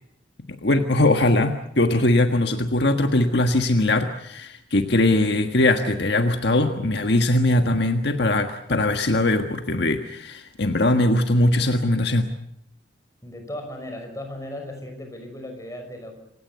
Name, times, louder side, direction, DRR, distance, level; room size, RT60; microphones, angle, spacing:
voice 1, 0.5-12.3, left 1 dB, 65° left, 6 dB, 1.6 m, -21 dB
voice 2, 13.2-16.1, left 1 dB, 15° left, 4 dB, 5.7 m, -36 dB
27.5 x 17.0 x 8.3 m, 0.75 s
head